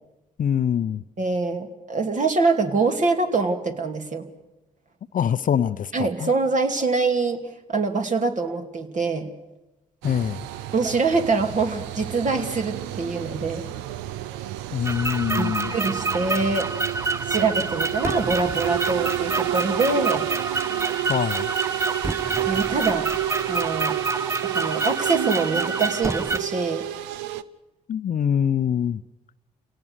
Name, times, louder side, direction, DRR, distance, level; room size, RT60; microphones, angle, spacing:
voice 1, 0.4-1.0 5.1-6.3 10.0-10.5 14.7-15.8 21.1-21.5 27.9-29.0, left 8 dB, 50° left, 0.7 m, -24 dB
voice 2, 1.2-4.3 5.9-7.4 7.7-9.3 10.7-13.7 15.4-16.7 17.3-20.3 22.5-23.1 23.5-24.0 24.4-26.8, right 3 dB, 45° right, 2.7 m, -24 dB
sound 1, 10.0-27.4, right 13 dB, 75° right, 0.7 m, -30 dB
sound 2, 14.8-26.4, right 3 dB, 15° right, 0.8 m, -28 dB
29.0 x 18.0 x 6.7 m
hypercardioid pair, 45°, 18 cm